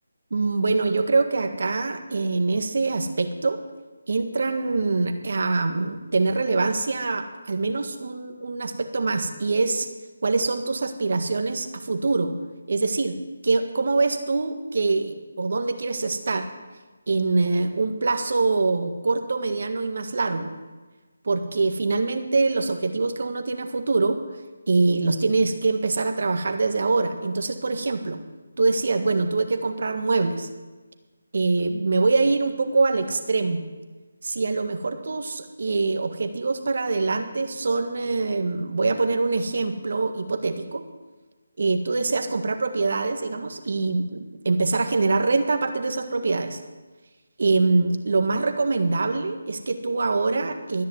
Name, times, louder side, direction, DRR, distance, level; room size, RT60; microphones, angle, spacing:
voice 1, 0.3-3.6 4.1-9.9 10.2-12.3 12.7-13.1 13.4-16.5 17.1-20.5 21.2-24.2 24.7-28.2 28.6-30.5 31.3-33.6 34.2-40.8 41.6-46.6 47.4-50.8, right 3 dB, 60° right, 7 dB, 1.6 m, -24 dB
13.5 x 10.5 x 8.1 m, 1.2 s
figure-of-eight pair, 160°, 0 cm